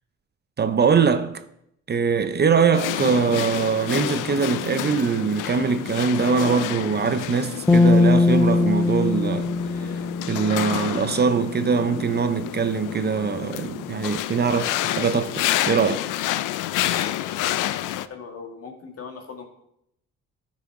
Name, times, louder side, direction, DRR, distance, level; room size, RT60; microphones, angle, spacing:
voice 1, 0.6-1.4 1.9-9.5 9.8-9.9 10.3-16.1, right 5 dB, 35° right, 0.6 m, -22 dB
sound 1, 2.7-18.1, left 14 dB, 85° left, 0.5 m, -29 dB
sound 2, 7.7-11.0, left 3 dB, 10° left, 0.6 m, -20 dB
voice 2, 16.8-19.5, left 5 dB, 50° left, 1.9 m, -39 dB
12.5 x 6.2 x 3.6 m
cardioid pair, 90°, 30 cm